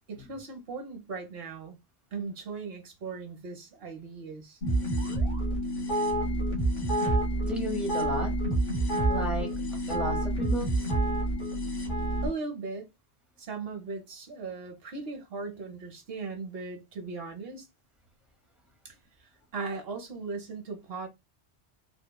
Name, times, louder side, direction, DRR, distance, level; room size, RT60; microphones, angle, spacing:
voice 1, 0.1-1.8 2.1-4.6 12.2-12.9 13.4-17.7 18.8-21.1, right 4 dB, 65° right, 1.0 m, -38 dB
sound 1, 4.6-12.3, right 1 dB, 55° left, 1.4 m, -28 dB
voice 2, 7.4-8.4 9.1-10.9, equal, ahead, 0.7 m, -34 dB
3.5 x 2.1 x 2.2 m
omnidirectional pair, 1.1 m